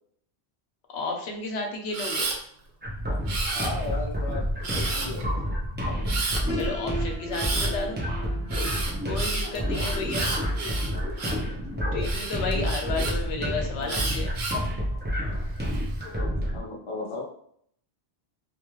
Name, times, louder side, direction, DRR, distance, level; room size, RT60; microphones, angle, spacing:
voice 1, 0.9-2.3 6.6-8.0 9.0-10.3 11.9-14.3, left 3 dB, 80° left, 2 dB, 0.8 m, -32 dB
Camera, 1.9-2.4 3.3-4.0 4.6-5.2 6.1-6.4 7.3-7.7 8.5-11.5 12.0-13.1 13.9-14.7 15.3-15.8, right 3 dB, 70° right, 0.8 m, -31 dB
sound 1, 2.8-16.6, equal, 15° right, 0.5 m, -29 dB
voice 2, 3.5-4.5 4.7-5.6 9.4-9.9 12.5-14.1 16.4-17.2, left 3 dB, 35° left, -3 dB, 0.6 m, -37 dB
Piano, 6.5-12.3, right 2 dB, 40° right, 1.3 m, -40 dB
2.3 x 2.3 x 3.0 m, 0.66 s
omnidirectional pair, 1.1 m